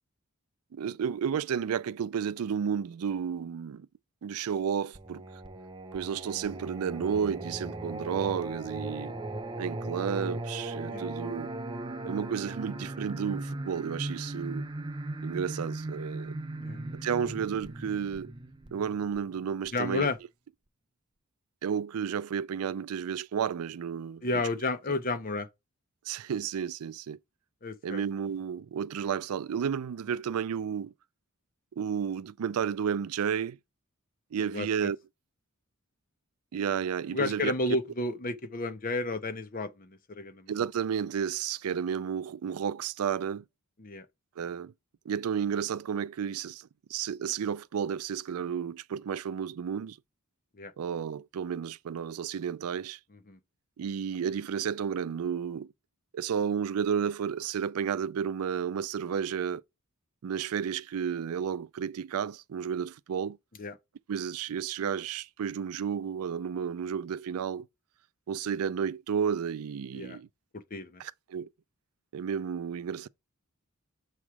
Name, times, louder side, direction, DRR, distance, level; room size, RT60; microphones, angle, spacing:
voice 1, 0.7-3.9 4.2-5.4 5.9-9.1 9.6-11.5 12.0-14.7 15.2-16.4 17.0-18.3 18.7-20.1 21.6-24.2 26.0-27.2 27.8-30.9 31.7-33.6 34.3-35.0 36.5-37.5 40.5-43.4 44.4-44.7 45.1-50.0 50.8-53.0 53.8-55.7 56.1-59.6 60.2-63.4 64.1-67.7 68.3-70.3 71.0-71.5 72.1-73.1, right 7 dB, 80° right, 0.4 m, -32 dB
Singing, 4.9-19.7, right 2 dB, 20° right, 0.5 m, -38 dB
voice 2, 16.6-17.1 19.7-20.2 24.2-25.5 27.6-28.0 34.4-34.9 37.1-40.5 43.8-44.1 50.6-50.7 53.3-53.4 63.6-63.7 69.9-70.2 70.5-71.0, left 2 dB, 40° left, 0.8 m, -32 dB
7.2 x 3.1 x 4.7 m
head